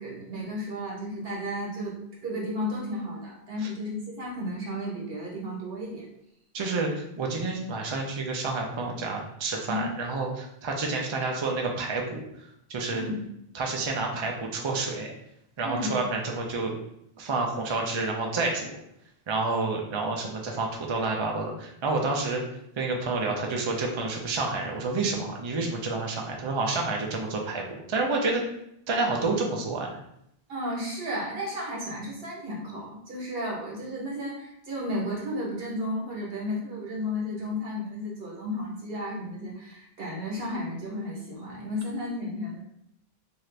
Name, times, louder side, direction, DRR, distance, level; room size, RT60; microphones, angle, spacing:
voice 1, 0.0-2.0 2.2-6.1 9.7-9.9 12.9-13.2 15.6-16.0 30.5-42.6, left 1 dB, 70° right, -4 dB, 1.2 m, -33 dB
voice 2, 6.5-13.1 13.5-15.1 15.6-16.7 17.2-18.8 19.3-22.4 22.8-28.4 28.9-30.0, right 3 dB, 45° right, 0 dB, 0.3 m, -29 dB
2.7 x 2.4 x 3.2 m, 0.76 s
omnidirectional pair, 1.0 m